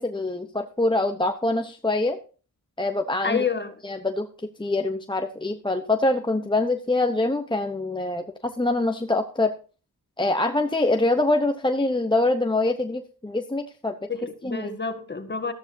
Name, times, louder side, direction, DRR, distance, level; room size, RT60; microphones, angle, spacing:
voice 1, 0.0-2.2 2.8-3.4 3.8-4.3 4.6-9.5 10.2-14.0 14.4-14.7, left 2 dB, 15° left, 0.9 m, -24 dB
voice 2, 3.2-3.8 14.1-15.5, left 5 dB, 35° left, 1.7 m, -28 dB
13.5 x 13.0 x 2.7 m
cardioid pair, 65°, 33 cm